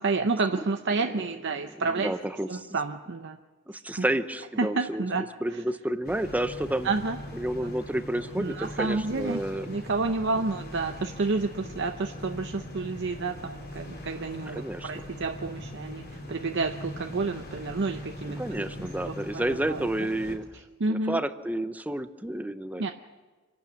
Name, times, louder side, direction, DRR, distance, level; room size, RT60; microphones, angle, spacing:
voice 1, 0.0-2.1 2.5-3.4 4.0-4.1 4.6-5.2 6.8-7.2 7.6-7.7 8.4-9.4 9.7-19.9 20.8-21.2 22.8-22.9, right 3 dB, 60° right, 6 dB, 0.7 m, -30 dB
voice 2, 1.7-2.8 3.7-6.9 7.3-9.7 14.5-14.9 18.4-20.5 20.9-22.9, right 1 dB, 10° right, 11 dB, 0.7 m, -30 dB
sound 1, 6.0-20.4, left 1 dB, 50° left, 4.9 m, -41 dB
27.0 x 12.0 x 8.2 m, 1.3 s
head